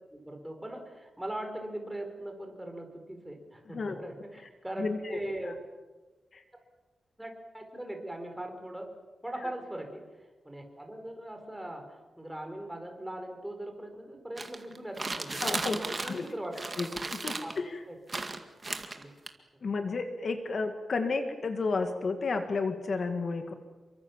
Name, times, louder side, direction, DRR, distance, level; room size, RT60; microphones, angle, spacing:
voice 1, 0.1-5.6 7.2-8.9 9.2-16.6 17.4-17.5 17.9-18.2 19.0-19.1, right 1 dB, 5° right, 4 dB, 4.7 m, -40 dB
voice 2, 3.7-4.0 4.8-5.2 5.5-5.6 6.3-6.4 15.4-16.2 16.8-17.8 19.6-23.5, left 4 dB, 50° left, 6 dB, 2.0 m, -32 dB
sound 1, 14.4-16.3 16.5-17.6 18.1-19.3, right 3 dB, 25° right, 2.1 m, -35 dB
29.0 x 24.0 x 7.3 m, 1.2 s
wide cardioid pair, 155°, 0 cm